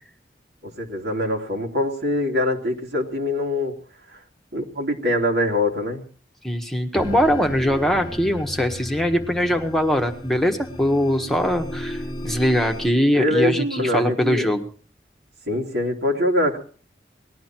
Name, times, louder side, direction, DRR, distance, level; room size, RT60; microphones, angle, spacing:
voice 1, 0.6-3.8 4.1-4.2 4.5-6.0 13.1-14.5 15.5-16.6, left 1 dB, 80° right, 1 dB, 3.0 m, -23 dB
voice 2, 6.4-14.7, equal, ahead, 3 dB, 1.2 m, -22 dB
sound 1, 7.0-12.9, left 1 dB, 25° left, 0.9 m, -35 dB
19.5 x 12.5 x 4.5 m, 0.42 s
head